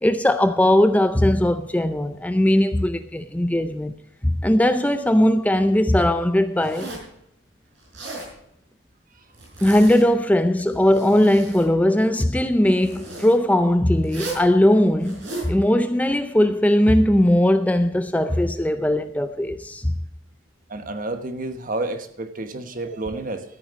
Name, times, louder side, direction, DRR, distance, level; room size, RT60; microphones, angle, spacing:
voice 1, 0.0-3.9 4.2-6.9 9.6-19.9, left 1 dB, 10° left, 0.4 m, -19 dB
Zipper (clothing), 6.6-7.1 7.8-8.3 9.3-10.1 10.7-11.7 12.8-13.3 14.0-14.5 15.0-15.5, right 2 dB, 65° right, 5.4 m, -35 dB
voice 2, 20.7-23.4, right 2 dB, 45° right, 1.2 m, -30 dB
13.5 x 9.2 x 5.1 m
head